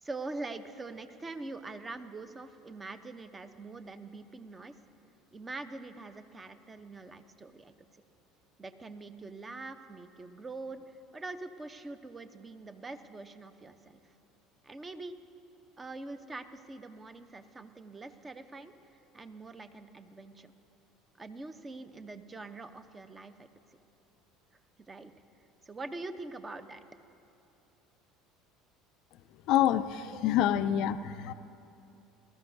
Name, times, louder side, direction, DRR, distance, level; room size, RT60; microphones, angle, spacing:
voice 1, 0.0-4.7 5.3-7.7 8.6-14.0 14.6-15.2 15.8-18.7 19.1-20.5 21.2-23.5 24.9-25.1 25.6-26.8, right 3 dB, 25° right, 10 dB, 0.7 m, -44 dB
voice 2, 29.5-31.3, left 11 dB, 60° left, 13 dB, 0.4 m, -27 dB
20.0 x 13.5 x 2.7 m, 2.8 s
hypercardioid pair, 70°, 0 cm